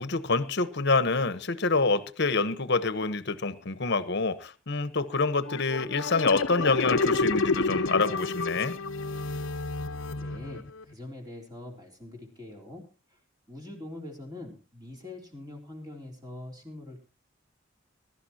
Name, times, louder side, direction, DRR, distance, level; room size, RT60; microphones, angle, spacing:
voice 1, 0.0-8.8, left 3 dB, 60° left, 14 dB, 1.1 m, -27 dB
sound 1, 5.5-10.8, left 3 dB, 80° left, 0.8 m, -29 dB
voice 2, 10.2-13.2 13.5-17.0, left 1 dB, 20° right, 2 dB, 3.8 m, -43 dB
22.0 x 12.5 x 2.9 m, 0.33 s
head